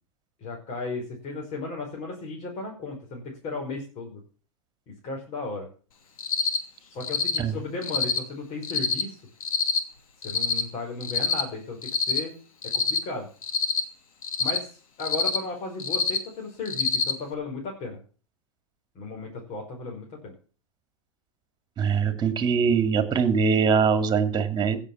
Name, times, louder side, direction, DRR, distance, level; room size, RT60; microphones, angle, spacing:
voice 1, 0.4-4.2 5.0-5.7 6.9-9.2 10.2-12.3 12.7-13.3 14.4-18.0 19.0-20.3, left 3 dB, 40° left, 0 dB, 5.3 m, -35 dB
Cricket, 6.2-6.6 7.0-7.4 7.8-8.2 8.6-9.0 9.4-9.8 10.2-10.6 11.0-11.4 11.8-12.2 12.6-13.0 13.4-13.8 14.2-14.6 15.0-15.4 15.8-16.2 16.7-17.1, left 5 dB, 80° left, 2.7 m, -25 dB
voice 2, 21.8-24.8, right 6 dB, 25° right, 9 dB, 2.6 m, -22 dB
16.5 x 7.0 x 7.2 m, 0.40 s
hypercardioid pair, 110°, 18 cm